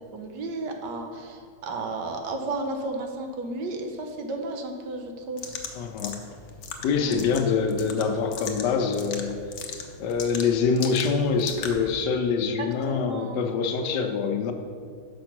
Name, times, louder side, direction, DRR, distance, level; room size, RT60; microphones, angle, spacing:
voice 1, 0.1-5.5 6.9-7.3 12.6-13.4 13.9-14.2, right 2 dB, 85° right, 3 dB, 1.5 m, -33 dB
sound 1, 5.4-11.9, left 5 dB, 60° left, 0.8 m, -39 dB
voice 2, 5.8-6.3 6.8-9.5 10.0-14.5, left 5 dB, 80° left, 6 dB, 1.3 m, -25 dB
6.1 x 5.2 x 5.9 m, 2.2 s
omnidirectional pair, 1.8 m